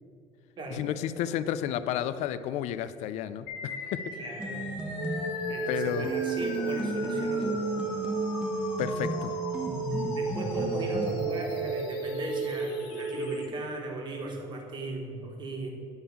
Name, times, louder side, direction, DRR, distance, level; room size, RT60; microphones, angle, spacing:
voice 1, 0.7-4.0 5.7-6.1 8.8-9.3, left 11 dB, 65° left, 13 dB, 0.4 m, -32 dB
sound 1, 3.5-13.5, left 4 dB, 90° left, 1.8 m, -40 dB
voice 2, 4.1-4.6 5.3-7.6 10.0-15.7, right 2 dB, 35° right, 1 dB, 1.4 m, -37 dB
sound 2, 4.4-5.5 6.0-11.2, equal, 5° right, 1.0 m, -34 dB
Wind instrument woodwind instrument, 5.0-13.4, right 5 dB, 80° right, 1.5 m, -33 dB
9.5 x 3.7 x 7.0 m, 2.6 s
cardioid pair, 150°, 13 cm